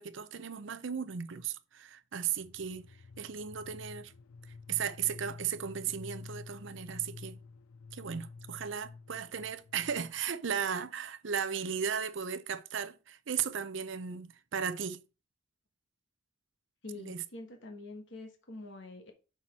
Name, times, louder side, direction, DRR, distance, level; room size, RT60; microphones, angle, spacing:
voice 1, 0.0-2.9 3.2-4.1 4.7-7.4 7.9-15.0 16.9-17.2, right 7 dB, 60° right, 0.6 m, -36 dB
sound 1, 2.4-10.2, left 4 dB, 80° left, 0.4 m, -49 dB
voice 2, 16.8-19.1, left 2 dB, 60° left, 1.3 m, -46 dB
5.6 x 4.4 x 5.9 m
head